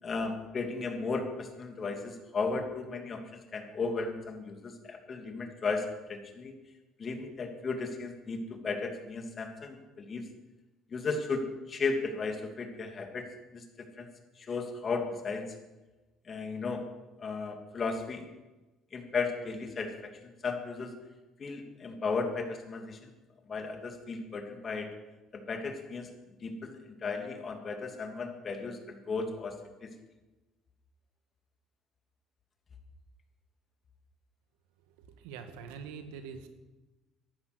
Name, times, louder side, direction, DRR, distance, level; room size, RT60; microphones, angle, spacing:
voice 1, 0.0-6.6 7.0-10.2 10.9-13.2 13.5-13.6 14.0-14.1 14.4-15.5 16.2-16.8 17.2-18.3 18.9-21.0 21.4-23.1 23.5-24.9 25.3-26.1 26.4-29.9, left 4 dB, 40° left, 4 dB, 2.9 m, -35 dB
voice 2, 35.0-36.5, right 6 dB, 80° right, 8 dB, 1.6 m, -44 dB
14.5 x 11.5 x 6.2 m, 1.1 s
hypercardioid pair, 65°, 0 cm